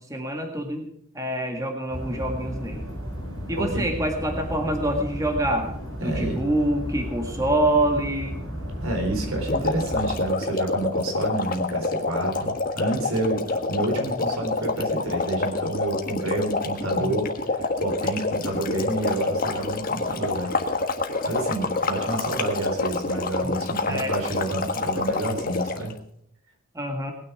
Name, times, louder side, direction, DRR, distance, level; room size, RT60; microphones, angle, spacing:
voice 1, 0.1-0.9 1.2-2.8 3.5-5.7 6.0-8.4 17.0-17.2 23.4-23.5 23.9-24.1 26.8-27.1, right 1 dB, 15° right, 3 dB, 1.8 m, -26 dB
sound 1, 1.9-10.2, equal, 70° right, 7.0 m, -34 dB
voice 2, 3.5-3.9 6.0-6.4 8.8-20.5 21.0-25.9, right 2 dB, 90° right, 4 dB, 4.1 m, -29 dB
sound 2, 9.5-25.9, left 3 dB, 40° left, 1.5 m, -27 dB
19.5 x 9.5 x 4.9 m, 0.68 s
head